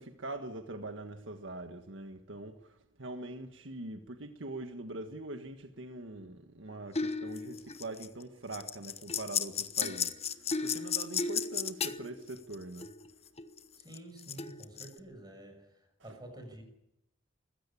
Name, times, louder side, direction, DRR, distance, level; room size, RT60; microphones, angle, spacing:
voice 1, 0.0-10.2 10.6-12.9 16.0-16.2, right 2 dB, 80° right, 1.6 m, -43 dB
sound 1, 7.0-8.2 8.5-13.1 13.4-14.9, left 6 dB, 35° left, 1.1 m, -34 dB
voice 2, 13.8-16.6, right 1 dB, 20° right, 6.1 m, -49 dB
21.5 x 16.0 x 8.5 m
head